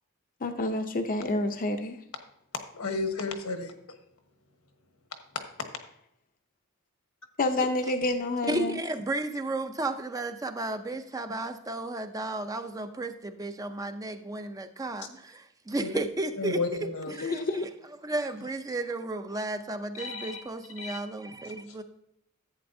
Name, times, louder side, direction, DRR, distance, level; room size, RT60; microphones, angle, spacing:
voice 1, 0.4-2.0 7.4-8.8 17.2-17.6, left 2 dB, 40° left, 5 dB, 0.6 m, -28 dB
voice 2, 2.7-3.7 15.8-15.9 16.4-17.1 19.9-20.4 20.8-21.0, left 3 dB, 75° left, 6 dB, 1.2 m, -32 dB
voice 3, 8.5-16.6 17.2-17.7 18.0-21.8, right 2 dB, 15° right, 8 dB, 0.4 m, -33 dB
11.0 x 8.6 x 2.6 m, 0.76 s
head